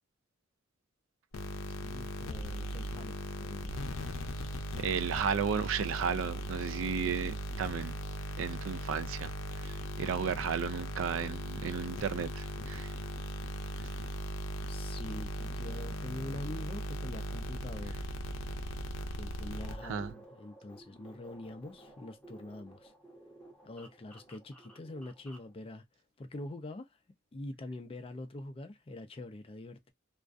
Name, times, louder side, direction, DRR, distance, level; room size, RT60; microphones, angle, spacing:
sound 1, 1.3-20.1, equal, 85° left, 0.5 m, -38 dB
voice 1, 1.8-4.0 14.7-18.1 19.1-22.9 23.6-25.8 26.2-26.9 27.3-29.9, left 1 dB, 30° left, 0.4 m, -44 dB
voice 2, 4.7-8.0 8.4-9.3 9.6-12.9 19.8-20.1, right 7 dB, 75° right, 0.3 m, -34 dB
sound 2, 19.6-25.5, right 1 dB, 5° left, 0.7 m, -54 dB
2.4 x 2.2 x 2.4 m
head